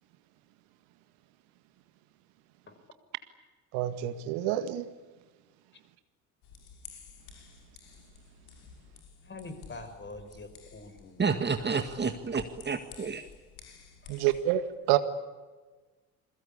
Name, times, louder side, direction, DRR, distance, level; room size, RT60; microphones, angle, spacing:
voice 1, 3.7-4.9 14.1-15.0, right 13 dB, 60° right, 11 dB, 1.8 m, -28 dB
sound 1, 6.4-14.4, left 6 dB, 55° left, 5.9 m, -52 dB
voice 2, 9.2-11.3 14.0-14.3, left 2 dB, 25° left, 8 dB, 5.5 m, -45 dB
voice 3, 11.2-13.2, right 5 dB, 25° right, 8 dB, 1.9 m, -30 dB
28.5 x 22.0 x 8.6 m, 1.3 s
figure-of-eight pair, 60°, 45 cm